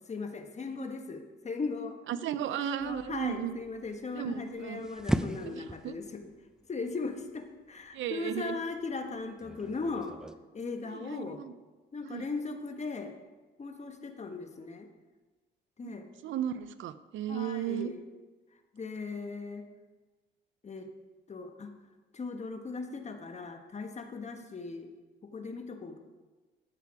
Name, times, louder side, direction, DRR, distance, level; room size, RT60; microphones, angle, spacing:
voice 1, 0.1-2.0 2.6-6.3 6.7-10.1 10.5-11.4 11.9-13.1 13.6-14.9 15.8-16.1 17.3-18.0 18.7-19.6 20.6-20.9 21.3-21.7 22.1-24.9 25.2-26.0, left 4 dB, 35° left, 5 dB, 1.3 m, -38 dB
voice 2, 2.1-3.6 4.1-4.9 5.5-6.0 7.9-8.6 10.9-11.5 12.0-12.3 15.8-15.9 16.2-17.9 24.4-24.5, right 10 dB, 75° right, 14 dB, 0.6 m, -35 dB
sound 1, 2.8-10.3, right 1 dB, 5° right, 0.5 m, -39 dB
11.5 x 8.3 x 4.8 m, 1.3 s
cardioid pair, 90°, 20 cm